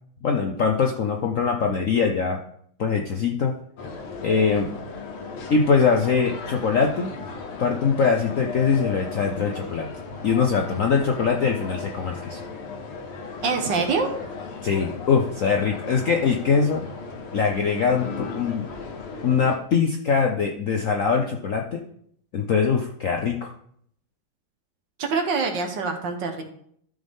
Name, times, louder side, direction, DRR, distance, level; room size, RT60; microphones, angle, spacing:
voice 1, 0.2-2.4 2.8-3.5 4.2-4.7 5.5-7.1 7.6-9.9 10.2-12.4 14.6-16.8 17.3-18.7 19.2-21.8 22.3-23.5, left 5 dB, 60° left, 2 dB, 0.8 m, -22 dB
sound 1, 3.8-19.6, left 4 dB, 90° left, 2.0 m, -36 dB
voice 2, 13.4-14.1 25.0-26.4, right 4 dB, 65° right, 4 dB, 1.8 m, -25 dB
13.0 x 5.3 x 3.6 m, 0.65 s
omnidirectional pair, 2.2 m